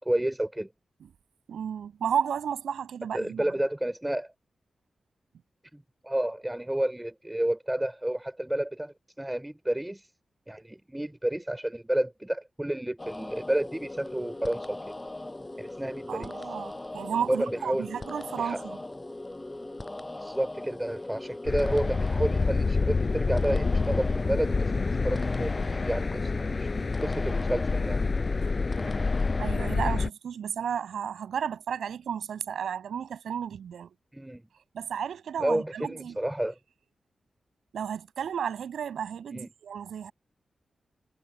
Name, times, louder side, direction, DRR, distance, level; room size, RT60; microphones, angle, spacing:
voice 1, 0.0-0.7 3.1-4.3 5.7-10.1 10.5-14.8 15.6-16.5 17.3-18.0 18.4-18.6 20.2-26.7 27.0-28.0 34.1-34.5 35.4-36.6 39.3-39.5, right 1 dB, 15° right, 3.7 m, -31 dB
voice 2, 1.5-3.4 16.1-18.8 29.4-33.9 34.7-36.2 37.7-40.1, right 8 dB, 85° right, 7.9 m, -33 dB
sound 1, 13.0-29.8, left 2 dB, 25° left, 7.1 m, -40 dB
sound 2, 21.4-30.1, left 4 dB, 50° left, 7.8 m, -27 dB
supercardioid pair, 40°, 0 cm